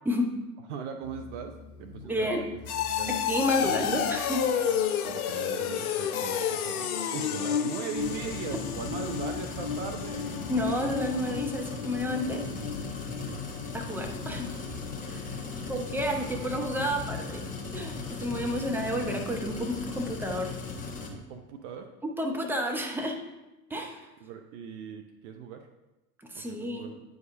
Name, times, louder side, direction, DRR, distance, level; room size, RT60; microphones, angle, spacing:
voice 1, 0.7-2.3 3.0-3.1 5.1-10.3 13.2-13.4 15.5-15.7 18.6-18.7 21.1-21.9 24.2-25.7 26.3-27.0, right 6 dB, 50° right, 6 dB, 0.6 m, -39 dB
sound 1, 1.0-13.7 14.0-14.4 14.8-14.9, left 8 dB, 70° left, 0.7 m, -32 dB
voice 2, 2.0-2.4 3.1-4.4 10.5-12.4 13.7-14.5 15.0-15.4 15.7-17.4 17.7-20.5 22.2-23.2 23.7-24.0 26.3-26.9, equal, 5° right, 2 dB, 0.7 m, -30 dB
sound 2, 7.9-21.1, left 4 dB, 15° left, 1.1 m, -37 dB
9.3 x 5.0 x 2.6 m, 1.0 s
figure-of-eight pair, 85°, 47 cm